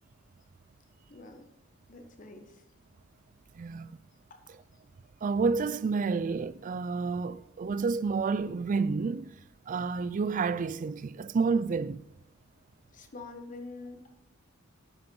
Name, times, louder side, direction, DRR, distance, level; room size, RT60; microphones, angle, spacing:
voice 1, 1.1-1.5 1.9-2.6 12.9-14.0, left 3 dB, 40° left, 1.2 m, -45 dB
voice 2, 3.5-4.0 5.2-9.4 9.7-12.0, right 4 dB, 40° right, 0.3 m, -29 dB
10.0 x 5.9 x 5.3 m
head